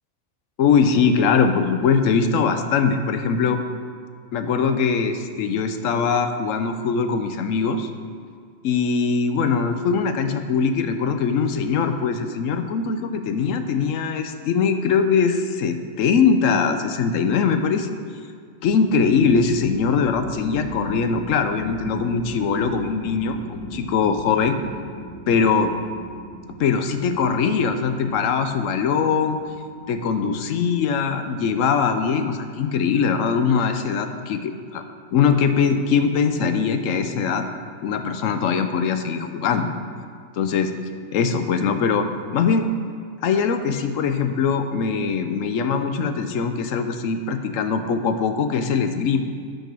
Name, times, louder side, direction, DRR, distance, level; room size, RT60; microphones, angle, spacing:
voice 1, 0.6-3.6 4.3-7.9 8.6-17.9 18.6-24.6 25.3-25.7 26.6-29.4 29.9-34.8 35.1-37.4 37.8-39.7 40.4-40.7 41.1-42.1 42.3-42.7 43.2-49.2, left 5 dB, 85° left, 8 dB, 1.0 m, -21 dB
sound 1, 18.6-30.7, right 1 dB, 70° right, 1.3 m, -38 dB
8.9 x 5.3 x 6.1 m, 2.1 s
omnidirectional pair, 1.3 m